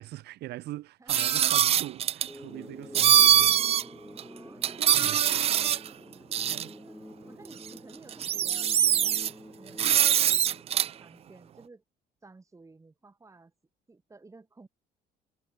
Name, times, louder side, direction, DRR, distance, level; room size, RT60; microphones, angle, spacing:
voice 1, 0.0-3.6 4.8-5.5 6.5-6.7, right 16 dB, 75° right, 2.8 m, -42 dB
voice 2, 1.0-1.6 3.2-4.7 6.5-7.0 7.3-9.3 9.6-10.3 10.7-11.8 12.2-13.5 13.9-14.7, right 3 dB, 20° right, 4.3 m, -54 dB
sound 1, 1.1-2.3 2.9-3.8 4.2-4.3 4.6-5.9 6.3-6.6 7.7-7.8 8.1-9.3 9.8-10.9, right 10 dB, 35° right, 0.3 m, -23 dB
sound 2, 2.3-11.3, left 1 dB, 5° left, 4.0 m, -48 dB
cardioid pair, 110°, 17 cm